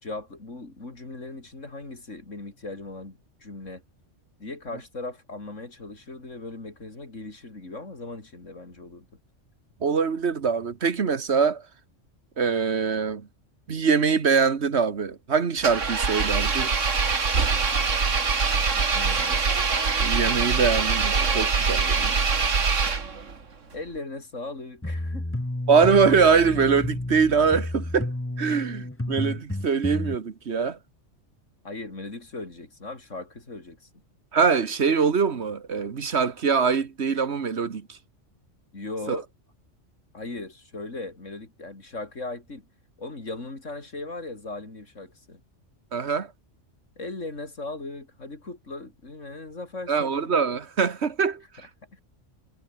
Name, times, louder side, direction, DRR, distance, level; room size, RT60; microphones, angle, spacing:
voice 1, 0.0-3.8 4.4-9.1 18.8-19.5 23.7-25.3 28.5-28.6 31.6-33.9 38.7-39.3 40.1-42.7 43.0-45.4 47.0-50.4 51.9-52.0, left 2 dB, 80° left, 4.5 m, -38 dB
voice 2, 9.8-11.6 12.4-13.3 13.7-16.7 20.0-22.1 25.7-30.8 34.3-38.0 39.1-39.2 45.9-46.3 49.9-51.7, right 5 dB, 60° right, 1.6 m, -23 dB
Engine, 15.6-23.4, right 5 dB, 80° right, 2.4 m, -23 dB
sound 1, 24.8-30.1, left 1 dB, 10° left, 1.4 m, -31 dB
omnidirectional pair, 1.3 m